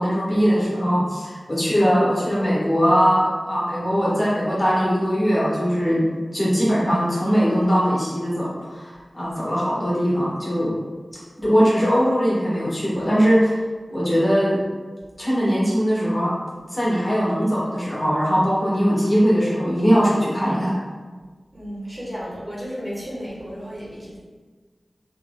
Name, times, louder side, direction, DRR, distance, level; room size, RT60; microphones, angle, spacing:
voice 1, 0.0-6.0 6.3-10.7 11.4-13.6 13.9-14.6 15.2-16.3 16.7-20.7, equal, 30° left, -7 dB, 1.5 m, -20 dB
voice 2, 21.5-24.2, equal, 25° right, -7 dB, 1.3 m, -33 dB
4.8 x 3.4 x 2.3 m, 1.4 s
wide cardioid pair, 80°, 0 cm